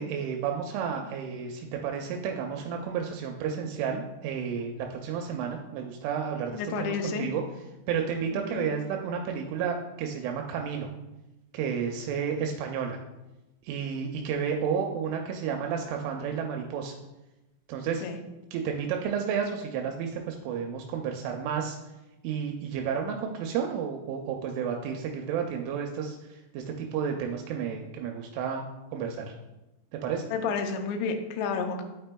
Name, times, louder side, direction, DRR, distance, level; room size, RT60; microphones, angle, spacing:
voice 1, 0.0-7.4 7.9-10.9 11.5-13.0 13.6-17.0 17.7-18.0 18.5-21.8 22.2-28.6 28.9-29.3 29.9-30.3, right 7 dB, 85° right, 2 dB, 2.9 m, -31 dB
voice 2, 6.5-7.3 8.3-8.7 18.0-18.2 30.3-31.8, left 5 dB, 80° left, 4 dB, 2.7 m, -31 dB
12.0 x 4.3 x 2.2 m, 1.0 s
omnidirectional pair, 5.4 m